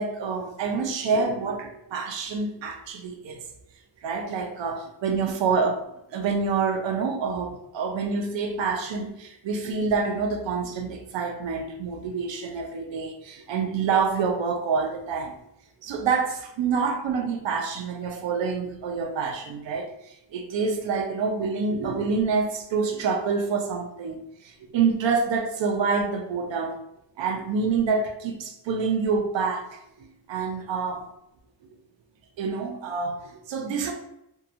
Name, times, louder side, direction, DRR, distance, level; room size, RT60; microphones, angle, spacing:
voice 1, 0.0-3.5 4.0-5.8 6.1-15.4 15.8-26.8 27.2-31.1 32.4-33.9, right 5 dB, 70° right, 4 dB, 0.6 m, -27 dB
2.7 x 2.3 x 2.6 m, 0.83 s
wide cardioid pair, 125°, 47 cm